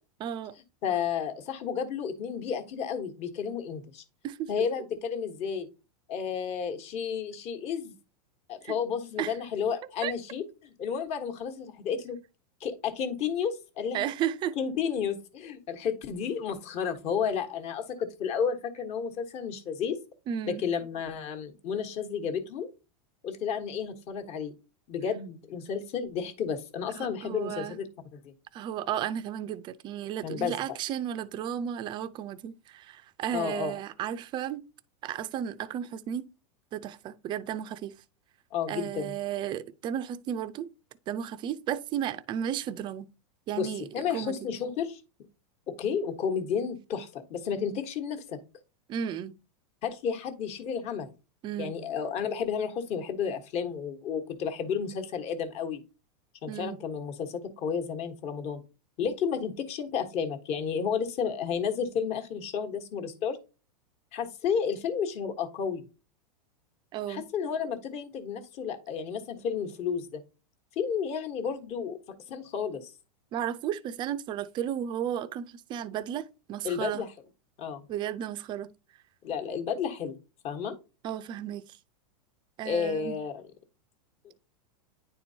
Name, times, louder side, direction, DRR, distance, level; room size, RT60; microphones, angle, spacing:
voice 1, 0.2-0.5 4.2-4.5 8.6-8.8 9.2-9.3 10.0-10.1 13.9-14.6 20.3-20.6 26.9-27.8 28.5-34.6 35.0-36.3 36.7-37.9 38.7-40.7 41.1-43.1 43.5-43.8 44.1-44.3 48.9-49.4 51.4-51.7 56.5-56.8 66.9-67.2 73.3-77.0 77.9-78.7 81.0-81.6 82.6-83.2, right 10 dB, 25° right, 0.5 m, -33 dB
voice 2, 0.8-4.0 4.5-5.7 6.1-7.9 8.5-12.2 12.6-14.1 14.5-20.0 20.5-22.7 23.2-24.5 24.9-28.3 30.2-30.5 33.3-33.8 38.5-39.1 43.6-45.0 45.7-48.4 49.8-51.1 51.6-55.8 56.4-58.6 59.0-63.4 64.1-65.8 67.1-70.2 70.7-72.0 72.3-72.9 76.6-77.1 77.6-77.8 79.2-80.1 80.4-80.7 82.6-83.4, left 7 dB, 35° left, 1.3 m, -32 dB
10.0 x 4.4 x 2.8 m
supercardioid pair, 150°, 19 cm